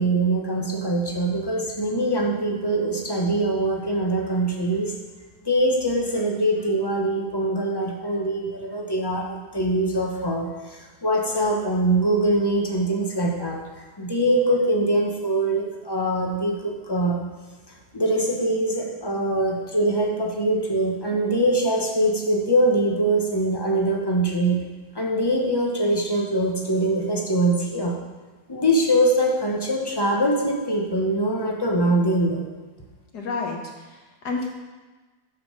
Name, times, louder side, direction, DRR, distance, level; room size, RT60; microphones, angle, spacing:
voice 1, 0.0-4.9 5.4-13.6 14.0-17.2 17.9-24.6 24.9-28.0 28.5-32.4, right 1 dB, 25° left, 0 dB, 0.5 m, -23 dB
voice 2, 33.1-34.5, left 4 dB, 60° left, 0 dB, 1.7 m, -30 dB
6.9 x 5.4 x 6.4 m, 1.2 s
omnidirectional pair, 2.0 m